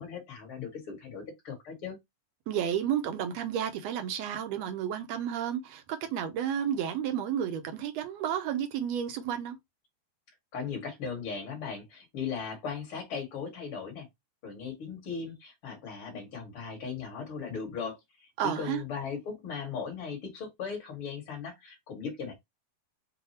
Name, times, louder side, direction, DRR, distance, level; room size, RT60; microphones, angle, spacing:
voice 1, 0.0-2.0 10.5-14.1 14.4-22.3, left 6 dB, 50° left, 1.9 m, -38 dB
voice 2, 2.5-9.6 18.4-18.8, right 9 dB, 75° right, 1.6 m, -31 dB
5.7 x 2.3 x 4.2 m
omnidirectional pair, 3.7 m